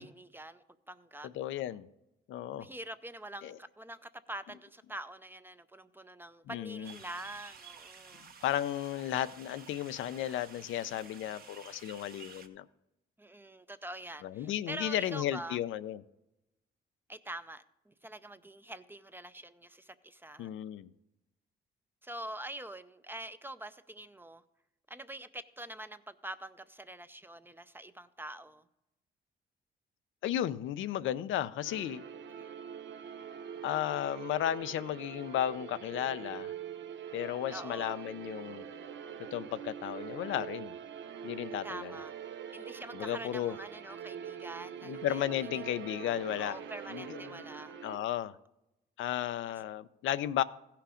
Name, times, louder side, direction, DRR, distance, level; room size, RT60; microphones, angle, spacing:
voice 1, 0.0-1.3 2.6-8.3 13.2-15.6 17.1-20.5 22.0-24.4 24.9-28.6 32.3-32.5 37.5-38.0 41.6-42.1 42.5-45.2 45.5-45.6 46.4-47.7 49.5-49.6, right 1 dB, 10° right, 12 dB, 0.5 m, -45 dB
voice 2, 1.3-1.9 2.3-2.7 3.4-3.6 6.5-6.9 8.4-12.7 14.2-16.0 20.4-20.9 30.2-32.0 33.6-36.5 37.1-38.6 39.3-40.8 41.2-41.9 42.9-43.6 44.8-46.6 46.9-47.4 47.8-48.3 49.0-50.4, left 11 dB, 80° left, 13 dB, 0.5 m, -34 dB
sound 1, 6.8-12.5, right 5 dB, 50° right, 1.2 m, -52 dB
sound 2, 31.6-48.0, right 8 dB, 65° right, 0.7 m, -44 dB
15.5 x 5.8 x 5.0 m, 0.91 s
cardioid pair, 90°, 20 cm